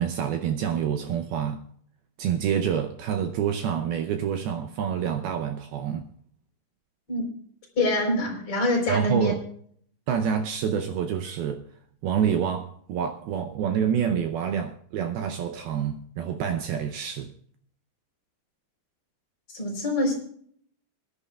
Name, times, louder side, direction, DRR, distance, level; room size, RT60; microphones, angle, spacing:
voice 1, 0.0-1.7 2.2-6.1 8.9-9.4 10.1-11.6 12.0-17.3, right 8 dB, 85° right, 2.2 m, -27 dB
voice 2, 7.8-9.3 19.5-20.1, left 1 dB, 30° left, 4.6 m, -25 dB
25.5 x 11.0 x 2.4 m
omnidirectional pair, 5.4 m